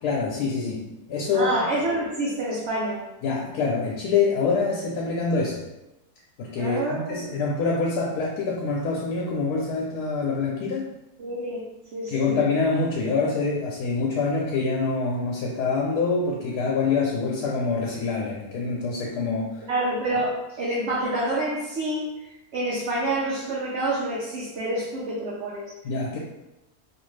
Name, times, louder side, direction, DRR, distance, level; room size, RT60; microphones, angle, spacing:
voice 1, 0.0-1.7 3.2-5.7 6.4-10.9 12.1-19.6 25.8-26.2, left 4 dB, 85° left, -3 dB, 1.2 m, -25 dB
voice 2, 1.3-3.0 6.6-7.3 11.2-11.6 11.9-12.4 19.7-22.1 22.5-25.6, right 1 dB, 60° right, -6 dB, 0.8 m, -27 dB
2.9 x 2.5 x 3.1 m, 0.96 s
omnidirectional pair, 1.6 m